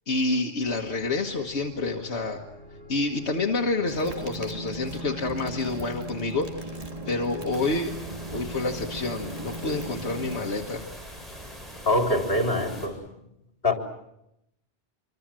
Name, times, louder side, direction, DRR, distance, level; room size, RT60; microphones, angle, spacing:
voice 1, 0.1-2.4 2.9-6.8 7.1-7.9 8.3-10.9, left 3 dB, 85° left, 2 dB, 1.7 m, -28 dB
sound 1, 0.6-10.7, equal, 60° right, 3.0 m, -48 dB
sound 2, 3.9-10.4, right 2 dB, 35° right, 2.2 m, -37 dB
sound 3, 7.5-12.9, equal, ahead, 8.0 m, -42 dB
voice 2, 11.9-13.1 13.6-13.7, left 1 dB, 65° left, 3 dB, 3.9 m, -24 dB
26.0 x 25.0 x 7.5 m, 0.84 s
omnidirectional pair, 1.1 m